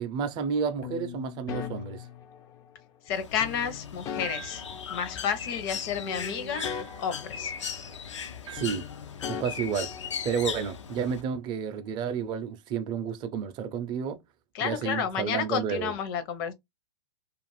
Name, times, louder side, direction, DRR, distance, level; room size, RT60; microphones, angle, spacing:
voice 1, 0.0-2.1 8.5-8.9 9.3-14.2 14.6-15.9, right 7 dB, 30° right, 0.5 m, -31 dB
sound 1, 0.8-2.8 3.4-5.7 6.0-8.3 8.6-10.6, left 7 dB, 25° left, 0.4 m, -41 dB
voice 2, 3.0-4.6 4.9-6.7 7.0-7.5 14.5-16.5, left 8 dB, 50° left, 0.7 m, -31 dB
Bird, 3.1-11.2, left 7 dB, 85° left, 0.6 m, -38 dB
sound 2, 4.2-4.7 6.5-7.0 8.4-8.9, right 9 dB, 85° right, 0.5 m, -44 dB
2.4 x 2.4 x 3.0 m
hypercardioid pair, 120°, 15 cm